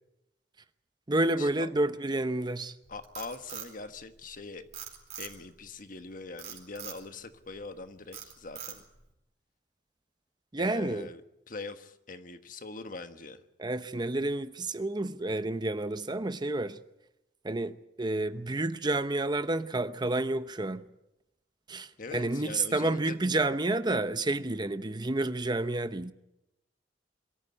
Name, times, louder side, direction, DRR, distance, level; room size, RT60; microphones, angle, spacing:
voice 1, 1.1-2.7 10.5-11.1 13.6-16.8 17.4-20.8 21.7-26.1, right 2 dB, 25° right, 0.8 m, -30 dB
Frog, 2.8-4.4 4.7-5.6 6.4-7.0 7.5-7.8 8.1-9.0, right 9 dB, 40° right, 4.5 m, -42 dB
voice 2, 2.9-4.6 5.2-8.8 10.6-11.2 11.5-13.4 22.0-23.2, left 3 dB, 50° left, 1.4 m, -42 dB
23.0 x 14.0 x 9.9 m
head